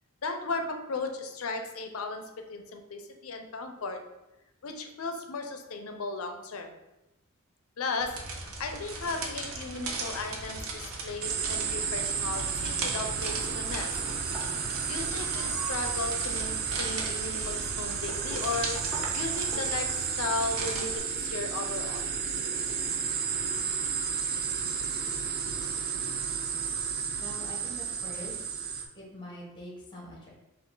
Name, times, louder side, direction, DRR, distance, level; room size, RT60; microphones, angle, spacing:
voice 1, 0.2-2.2 2.5-4.0 4.6-6.7 7.8-8.1 8.6-14.0 14.9-22.1, left 3 dB, 80° left, 5 dB, 0.6 m, -35 dB
sound 1, 8.0-21.0, right 3 dB, 80° right, 0.7 m, -39 dB
sound 2, 11.2-28.9, right 6 dB, 45° right, 0.4 m, -32 dB
sound 3, 11.5-19.8, right 1 dB, 5° right, 1.2 m, -43 dB
voice 2, 27.2-28.4 28.9-30.3, equal, 20° left, -2 dB, 1.1 m, -44 dB
4.7 x 2.5 x 3.8 m, 0.97 s
head